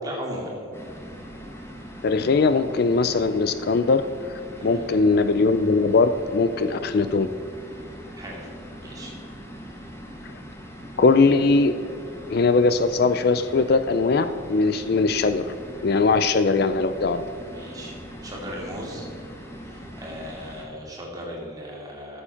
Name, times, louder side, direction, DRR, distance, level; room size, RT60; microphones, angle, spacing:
voice 1, 0.0-0.8 4.6-4.9 8.2-8.5 8.8-9.1 9.6-9.9 17.4-19.1 19.6-22.2, equal, 20° right, -2 dB, 2.3 m, -37 dB
sound 1, 0.7-20.6, equal, 10° left, 1.2 m, -41 dB
voice 2, 2.0-4.0 4.6-7.3 11.0-11.7 12.3-15.5 15.8-17.2, left 4 dB, 50° left, 11 dB, 0.4 m, -20 dB
13.0 x 7.1 x 5.7 m, 2.6 s
head